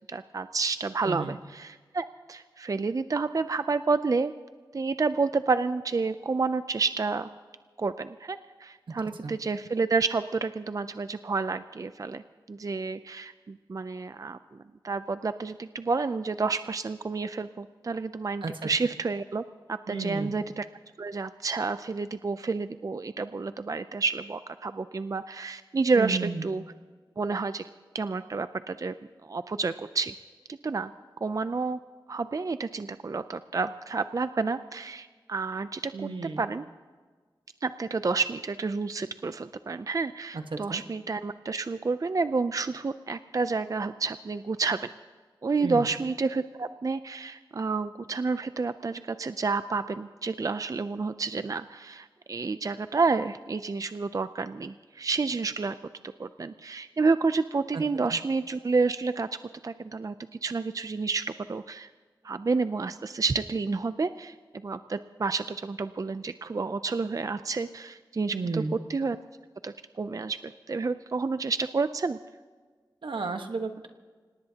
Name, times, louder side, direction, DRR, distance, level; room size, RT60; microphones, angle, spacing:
voice 1, 0.1-4.3 4.7-7.3 7.8-12.2 12.5-14.6 14.8-19.4 19.7-20.7 21.0-26.6 27.2-27.6 27.9-28.9 29.2-30.1 30.6-30.9 31.2-31.8 32.1-35.9 36.4-36.6 37.6-44.9 45.4-55.7 56.2-59.3 59.6-61.2 61.5-61.9 62.2-68.6 68.9-69.2 69.6-72.2, right 4 dB, 45° right, 11 dB, 0.4 m, -29 dB
voice 2, 1.0-1.4 8.9-9.0 9.2-9.3 18.4-18.7 19.9-20.4 25.9-26.5 35.9-36.5 40.3-40.8 45.6-45.9 57.7-57.8 58.1-58.2 68.3-68.7 73.0-73.9, right 4 dB, 85° right, 6 dB, 1.3 m, -33 dB
26.0 x 18.5 x 2.9 m, 1.5 s
wide cardioid pair, 85°, 8 cm